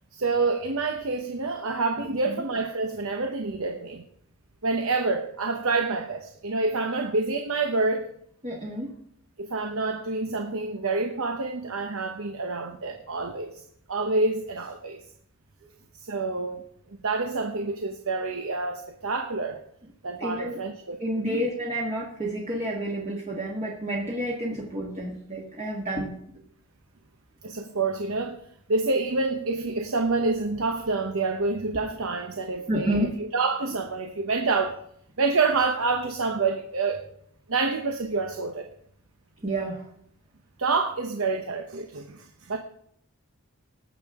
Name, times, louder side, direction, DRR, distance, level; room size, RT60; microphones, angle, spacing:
voice 1, 0.1-4.0 4.6-8.1 9.4-15.0 16.0-19.6 20.0-21.4 27.4-28.4 28.7-34.8 35.2-37.0 37.5-38.7 40.6-42.6, right 3 dB, 70° right, 5 dB, 0.9 m, -27 dB
voice 2, 8.4-8.9 15.6-15.7 20.2-20.6 21.0-26.1 32.7-33.1 39.4-39.9, right 1 dB, 30° right, -3 dB, 1.6 m, -30 dB
19.0 x 7.1 x 3.6 m, 0.69 s
head